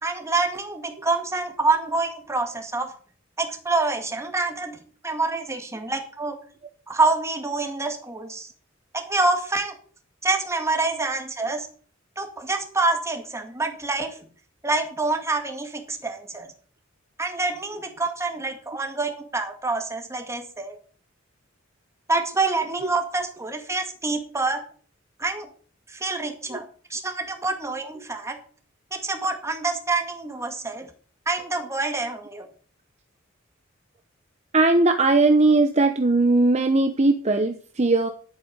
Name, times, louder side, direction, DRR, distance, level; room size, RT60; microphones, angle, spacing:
voice 1, 0.0-2.9 3.4-4.8 5.0-6.4 6.9-8.5 8.9-9.8 10.2-11.7 12.2-14.2 14.6-16.5 17.2-20.8 22.1-24.6 25.2-25.5 25.9-28.4 28.9-30.9 31.3-32.5, right 3 dB, 15° right, 4 dB, 2.1 m, -26 dB
voice 2, 34.5-38.1, right 2 dB, 35° right, 7 dB, 0.9 m, -19 dB
11.0 x 8.5 x 6.9 m, 0.43 s
head